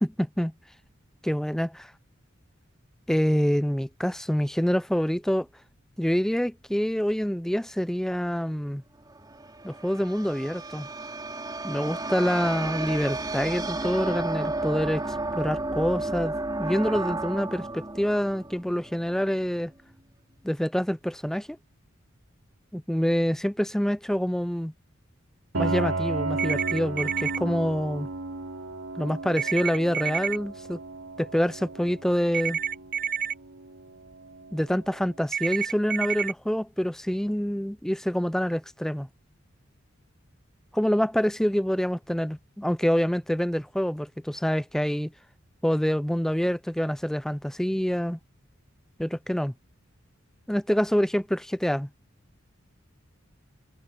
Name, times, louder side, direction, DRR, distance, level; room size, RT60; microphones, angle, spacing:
voice 1, 0.0-0.5 1.2-1.7 3.1-5.5 6.0-8.8 9.6-10.9 11.6-16.3 16.6-19.7 20.4-21.6 22.7-24.7 25.6-28.1 29.0-30.8 31.2-32.6 34.5-39.1 40.7-45.1 45.6-48.2 49.0-49.5 50.5-51.9, equal, ahead, 0.4 m, -26 dB
sound 1, 9.1-19.4, right 2 dB, 20° right, 5.4 m, -32 dB
Piano, 25.5-35.1, right 3 dB, 90° right, 3.3 m, -35 dB
sound 2, 26.4-27.4 29.4-30.4 32.3-33.3 35.3-36.3, right 7 dB, 55° right, 4.3 m, -29 dB
open air
head